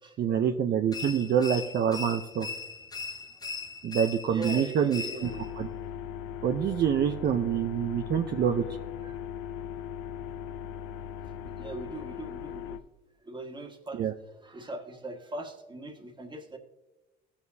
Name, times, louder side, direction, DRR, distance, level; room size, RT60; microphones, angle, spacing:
voice 1, 0.2-2.5 3.8-5.3 5.6-5.7 6.4-8.6 14.0-14.1, right 8 dB, 50° right, 5 dB, 0.7 m, -26 dB
sound 1, 0.9-5.5, left 4 dB, 20° left, 0.8 m, -39 dB
voice 2, 4.3-5.5 9.0-9.2 10.9-11.0 11.4-12.8 13.2-16.6, right 2 dB, 20° right, 3 dB, 1.7 m, -40 dB
sound 2, 5.2-12.8, left 9 dB, 90° left, 0.6 m, -39 dB
15.5 x 7.1 x 2.8 m, 1.1 s
supercardioid pair, 80°, 21 cm